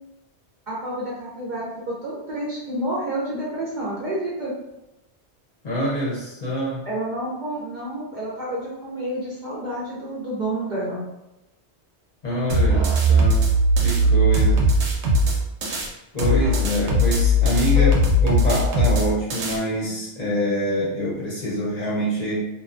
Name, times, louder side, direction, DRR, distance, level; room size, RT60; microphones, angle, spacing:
voice 1, 0.7-4.5 6.9-11.0 17.8-18.0, right 1 dB, 55° right, -5 dB, 0.6 m, -29 dB
voice 2, 5.6-6.8 12.2-13.5 13.8-14.7 15.7-17.9 18.2-22.5, equal, 45° left, -6 dB, 0.7 m, -25 dB
sound 1, 12.5-15.9 16.2-19.6, equal, 90° right, 0.9 m, -19 dB
2.6 x 2.1 x 2.4 m, 0.93 s
omnidirectional pair, 1.1 m